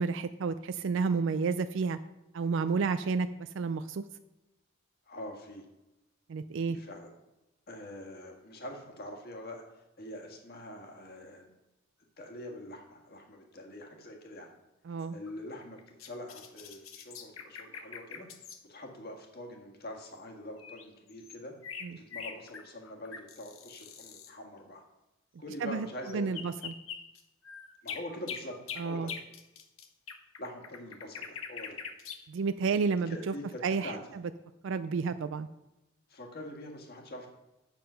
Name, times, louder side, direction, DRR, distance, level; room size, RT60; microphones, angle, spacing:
voice 1, 0.0-2.0 2.3-4.0 6.3-6.8 14.9-15.2 21.8-22.0 25.6-25.9 26.1-26.7 28.8-29.1 32.3-33.3 33.6-34.0 34.6-35.5, right 5 dB, 60° right, 11 dB, 0.4 m, -31 dB
voice 2, 5.0-5.6 6.6-7.1 7.7-9.6 10.0-11.4 12.2-14.5 15.1-18.3 18.7-21.5 22.0-24.8 25.4-26.4 27.8-28.5 28.8-29.1 30.4-31.8 33.1-34.0 36.1-37.3, left 1 dB, 50° left, 2 dB, 1.7 m, -44 dB
sound 1, 15.0-18.6 20.1-20.2 20.6-24.3 26.1-32.2, left 6 dB, 75° left, 0.9 m, -44 dB
7.5 x 7.4 x 5.6 m, 0.98 s
head